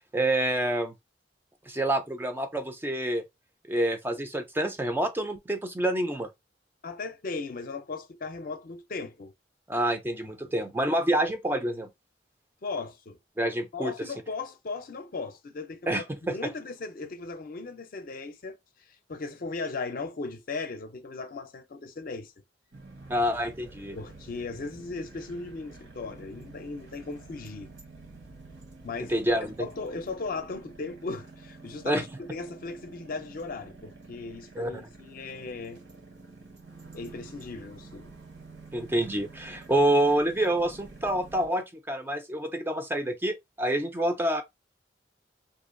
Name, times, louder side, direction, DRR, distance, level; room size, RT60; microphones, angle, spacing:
voice 1, 0.1-0.9 1.7-3.2 3.7-6.3 9.7-11.9 13.4-13.9 15.9-16.4 23.1-24.0 29.1-29.5 31.8-32.0 34.6-34.7 38.7-44.4, right 1 dB, 10° right, 0.3 m, -27 dB
voice 2, 6.8-9.3 10.2-10.5 12.6-13.2 13.7-18.6 19.1-22.3 23.9-27.7 28.8-29.1 29.6-35.8 36.9-38.1, left 3 dB, 50° left, 0.5 m, -37 dB
sound 1, 22.7-41.5, right 3 dB, 80° right, 1.0 m, -49 dB
2.5 x 2.2 x 2.5 m
head